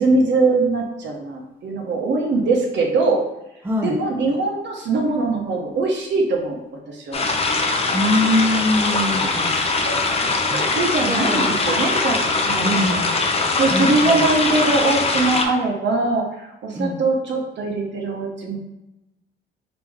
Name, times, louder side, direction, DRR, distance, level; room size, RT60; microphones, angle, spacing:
voice 1, 0.0-3.2 3.8-6.6 6.9-7.2 9.5-9.9 10.5-13.0 13.6-18.6, right 3 dB, 65° right, 0 dB, 1.0 m, -22 dB
voice 2, 3.6-4.0 7.9-9.5 10.1-10.7 11.0-11.5 12.6-13.1 13.7-14.3 16.7-17.0, left 1 dB, 10° right, 0 dB, 0.6 m, -23 dB
sound 1, 7.1-15.5, left 3 dB, 30° left, 0.6 m, -21 dB
3.5 x 2.9 x 3.5 m, 0.93 s
cardioid pair, 90°, 20 cm